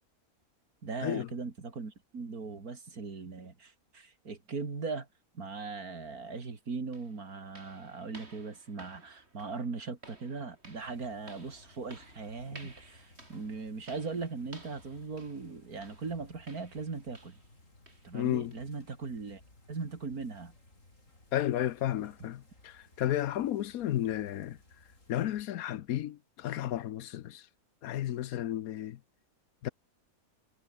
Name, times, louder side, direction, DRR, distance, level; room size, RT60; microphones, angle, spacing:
voice 1, 0.8-5.1 5.3-17.4 18.0-19.4 19.7-20.5, right 4 dB, 75° right, 3.3 m, -39 dB
sound 1, 6.3-6.4 6.9-17.6 17.9-18.1 18.5-18.7 19.2-19.3 19.8-19.9, right 2 dB, 45° right, 4.6 m, -56 dB
sound 2, 10.8-25.4, left 2 dB, 55° left, 6.9 m, -60 dB
voice 2, 18.1-18.5 21.3-24.6 25.1-27.5 27.8-29.0 29.6-29.7, left 12 dB, 75° left, 1.2 m, -33 dB
omnidirectional pair, 1.6 m